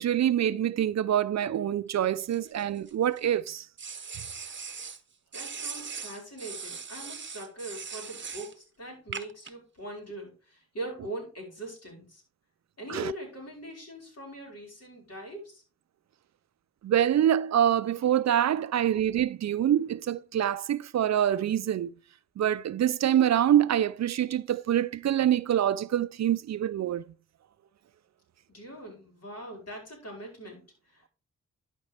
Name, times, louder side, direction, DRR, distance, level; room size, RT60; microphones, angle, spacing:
voice 1, 0.0-3.7 12.9-13.1 16.8-21.9 22.4-27.1, right 10 dB, 60° right, 0.4 m, -25 dB
sound 1, 2.2-3.2 3.8-5.0 5.3-8.5 9.1-9.5, right 5 dB, 40° right, 0.9 m, -40 dB
voice 2, 5.3-12.2 12.8-15.6 28.5-31.1, right 1 dB, 55° left, 5.0 m, -41 dB
11.5 x 5.2 x 3.3 m
cardioid pair, 55°, 30 cm